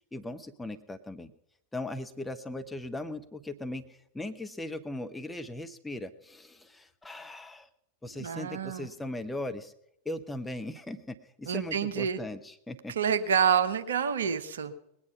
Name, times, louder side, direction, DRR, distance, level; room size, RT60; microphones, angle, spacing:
voice 1, 0.1-1.3 1.7-7.7 8.0-9.7 10.0-12.9, left 1 dB, 5° left, 7 dB, 0.8 m, -38 dB
voice 2, 8.1-8.9 11.5-12.2 12.9-14.7, right 7 dB, 65° right, 10 dB, 1.0 m, -28 dB
20.0 x 9.6 x 5.7 m, 0.79 s
figure-of-eight pair, 90°, 0 cm